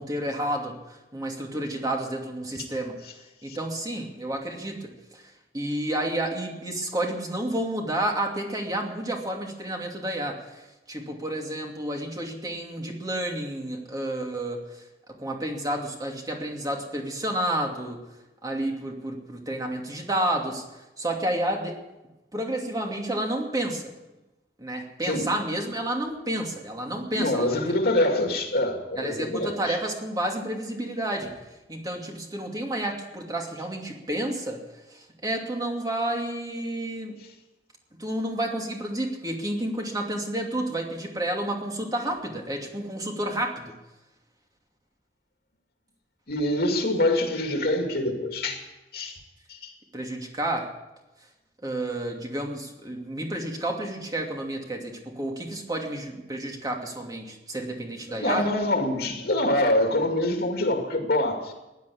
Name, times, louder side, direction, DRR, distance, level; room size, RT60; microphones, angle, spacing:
voice 1, 0.0-3.0 3.4-5.2 5.5-10.6 10.9-14.6 15.2-18.0 18.4-20.6 21.0-21.8 22.3-23.8 24.6-27.6 29.0-31.4 31.7-34.6 34.9-37.1 38.0-43.7 49.9-50.7 51.6-58.4, right 1 dB, 20° right, 1 dB, 2.6 m, -30 dB
voice 2, 25.0-25.3 27.1-29.8 46.3-48.6 48.9-49.2 49.5-49.7 58.1-61.5, left 1 dB, 65° left, 3 dB, 2.3 m, -25 dB
15.5 x 11.0 x 8.5 m, 1.0 s
head